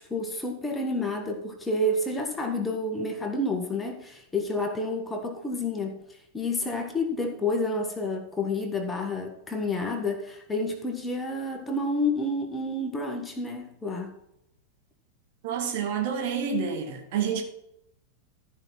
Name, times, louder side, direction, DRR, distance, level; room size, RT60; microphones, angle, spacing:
voice 1, 0.1-6.0 6.3-14.1, left 2 dB, 15° left, 1.7 m, -29 dB
voice 2, 15.4-17.4, right 6 dB, 50° right, 2.0 m, -28 dB
13.5 x 5.5 x 5.9 m
figure-of-eight pair, 90°, 0 cm